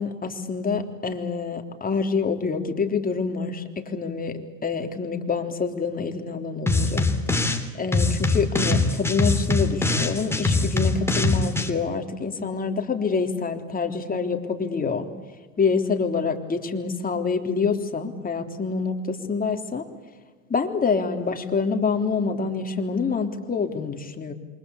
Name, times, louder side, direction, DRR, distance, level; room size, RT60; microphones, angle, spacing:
voice 1, 0.0-7.1 7.8-15.1 15.6-19.8 20.5-24.3, left 5 dB, 20° left, 5 dB, 3.6 m, -26 dB
sound 1, 6.7-7.6 7.9-11.7, left 3 dB, 5° left, 3.1 m, -23 dB
27.5 x 24.5 x 8.4 m, 1.4 s
hypercardioid pair, 95°, 39 cm